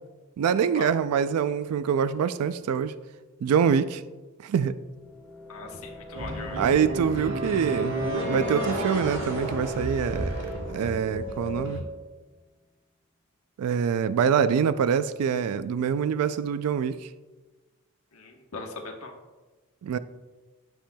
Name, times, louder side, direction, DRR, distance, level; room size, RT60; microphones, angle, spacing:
voice 1, 0.4-2.9 3.4-4.0 4.4-4.7 6.6-8.0 8.2-10.4 10.7-11.8 13.6-17.0 19.8-20.0, right 7 dB, 90° right, 13 dB, 0.3 m, -25 dB
sound 1, 4.6-12.3, left 2 dB, 10° right, 1.9 m, -42 dB
voice 2, 5.5-6.7 18.1-19.1, left 3 dB, 75° left, 1 dB, 1.0 m, -40 dB
sound 2, 6.1-11.8, right 1 dB, 55° right, 1.2 m, -31 dB
10.5 x 6.9 x 2.2 m, 1.2 s
head